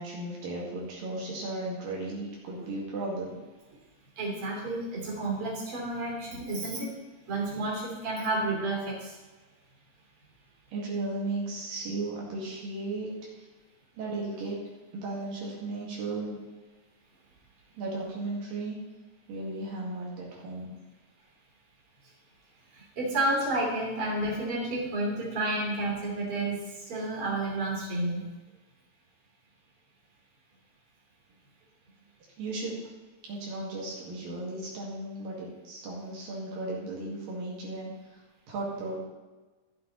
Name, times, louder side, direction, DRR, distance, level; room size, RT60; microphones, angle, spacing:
voice 1, 0.0-3.3 10.7-13.5 14.0-14.6 14.9-16.4 17.8-18.8 19.3-20.7 32.4-32.7 33.2-38.2 38.5-39.0, right 2 dB, 80° right, -4 dB, 3.8 m, -35 dB
voice 2, 4.2-7.0 7.3-9.1 22.7-26.6 26.9-28.2, right 2 dB, 40° right, -3 dB, 3.7 m, -30 dB
12.5 x 8.0 x 4.0 m, 1.2 s
omnidirectional pair, 4.0 m